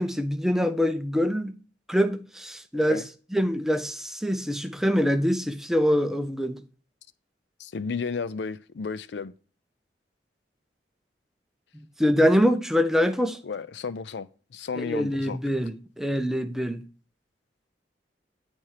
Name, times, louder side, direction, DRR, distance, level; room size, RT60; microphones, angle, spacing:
voice 1, 0.0-1.5 1.9-3.0 3.3-6.6 12.0-13.4 14.8-16.8, equal, ahead, 0.6 m, -24 dB
voice 2, 2.7-3.0 7.6-9.3 13.4-15.4, left 5 dB, 75° left, 0.4 m, -33 dB
8.7 x 4.4 x 4.7 m
head